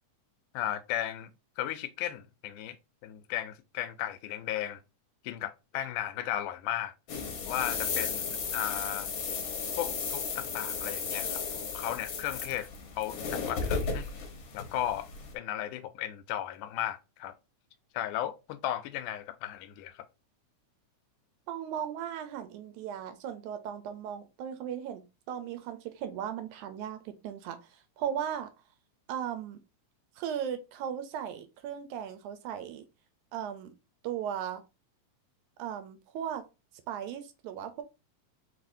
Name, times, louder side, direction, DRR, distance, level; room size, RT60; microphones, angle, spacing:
voice 1, 0.5-1.3 1.6-2.8 3.0-4.8 5.2-6.9 7.4-9.1 9.8-12.7 13.0-14.1 14.5-15.1 15.3-17.3 17.9-20.1, left 12 dB, 85° left, 2.1 m, -35 dB
sound 1, 7.1-15.3, left 5 dB, 60° left, 1.4 m, -35 dB
voice 2, 21.5-28.5 29.1-29.6 30.2-32.8 33.3-33.7 34.0-34.6 35.6-36.5 36.9-37.8, right 9 dB, 80° right, 2.0 m, -37 dB
4.7 x 4.1 x 2.6 m
omnidirectional pair, 3.6 m